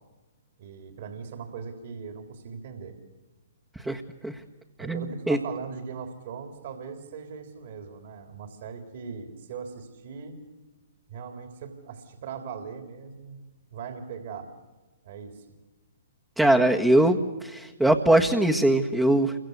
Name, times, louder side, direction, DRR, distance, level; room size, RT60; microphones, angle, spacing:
voice 1, 0.6-3.0 4.8-10.4 11.1-13.4 13.7-14.5 15.0-15.5, right 6 dB, 55° right, 6 dB, 3.6 m, -39 dB
voice 2, 3.7-4.4 4.8-5.4 16.4-19.4, right 1 dB, 5° right, 0 dB, 1.6 m, -22 dB
28.5 x 24.0 x 8.2 m, 1.2 s
hypercardioid pair, 130°, 0 cm